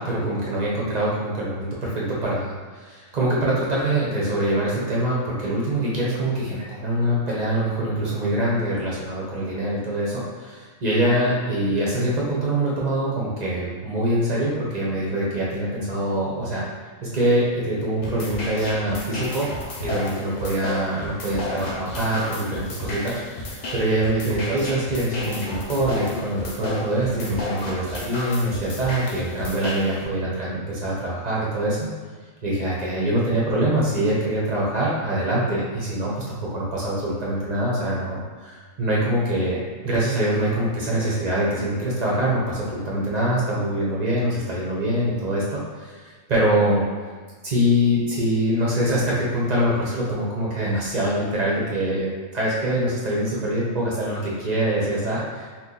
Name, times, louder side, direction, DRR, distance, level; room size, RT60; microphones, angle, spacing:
voice 1, 0.0-16.7 17.0-19.5 19.8-31.9 32.4-46.8 47.4-55.5, right 1 dB, 40° right, -6 dB, 0.6 m, -24 dB
sound 1, 18.0-30.0, left 2 dB, 55° left, 0.4 m, -32 dB
2.8 x 2.4 x 3.8 m, 1.5 s
omnidirectional pair, 1.5 m